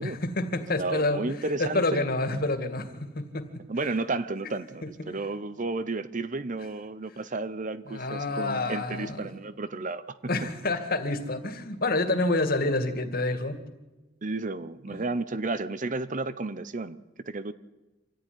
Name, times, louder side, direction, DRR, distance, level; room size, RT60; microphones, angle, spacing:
voice 1, 0.0-3.6 4.8-4.9 7.9-9.3 10.3-13.6 14.9-15.0, left 2 dB, 50° left, 7 dB, 2.3 m, -28 dB
voice 2, 0.8-2.0 3.7-10.2 14.2-17.5, right 3 dB, 40° right, 14 dB, 0.8 m, -32 dB
26.5 x 14.5 x 10.0 m, 1.1 s
head